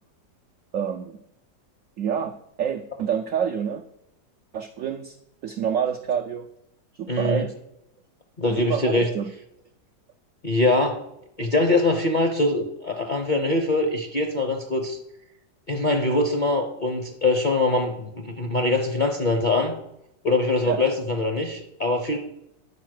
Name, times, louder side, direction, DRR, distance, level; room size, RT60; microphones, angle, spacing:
voice 1, 0.7-1.2 2.0-2.3 2.6-3.8 4.5-5.2 5.4-6.5 6.9-7.5 8.5-9.3 11.4-11.5 20.6-20.8, right 8 dB, 80° right, 5 dB, 0.7 m, -27 dB
voice 2, 7.1-7.4 8.4-9.1 10.4-11.0 11.4-15.0 15.7-19.7 20.2-22.2, left 2 dB, 40° left, 2 dB, 0.6 m, -23 dB
10.0 x 4.2 x 6.4 m, 0.80 s
omnidirectional pair, 2.0 m